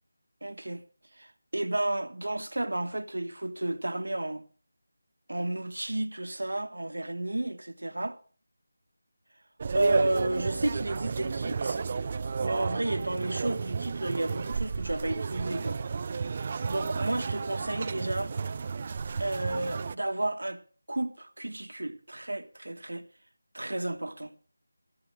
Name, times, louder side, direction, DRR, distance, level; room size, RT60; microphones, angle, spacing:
voice 1, 0.4-0.8 1.2-4.4 5.3-8.2 9.7-11.8 12.4-15.8 16.4-18.3 19.2-20.6 20.9-23.1 23.5-24.3, right 1 dB, 90° right, 1.3 m, -32 dB
sound 1, 9.6-20.0, right 5 dB, 30° right, 0.5 m, -32 dB
16.0 x 13.5 x 3.2 m
figure-of-eight pair, 170°, 0 cm